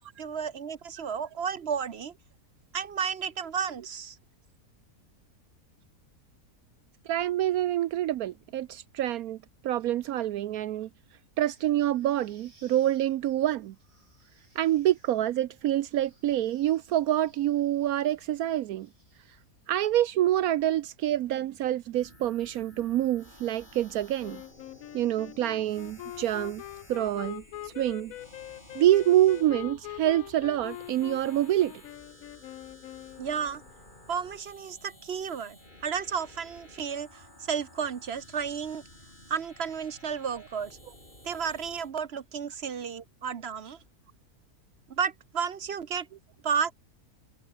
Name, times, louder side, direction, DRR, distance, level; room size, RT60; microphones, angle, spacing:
voice 1, 0.2-2.1 2.7-4.2 33.2-33.6 34.1-38.8 39.3-40.8 41.2-43.8 44.9-46.1 46.4-46.8, right 7 dB, 50° right, 1.0 m, -32 dB
voice 2, 7.1-9.4 9.6-10.9 11.4-13.7 14.6-18.9 19.7-24.4 24.9-26.6 26.9-28.1 28.7-31.7, right 13 dB, 70° right, 1.0 m, -26 dB
sound 1, 11.4-19.7, right 2 dB, 90° right, 8.2 m, -65 dB
sound 2, 21.9-41.9, left 1 dB, 30° left, 7.9 m, -54 dB
Wind instrument woodwind instrument, 24.2-33.7, left 14 dB, 70° left, 1.0 m, -43 dB
open air
omnidirectional pair, 1.7 m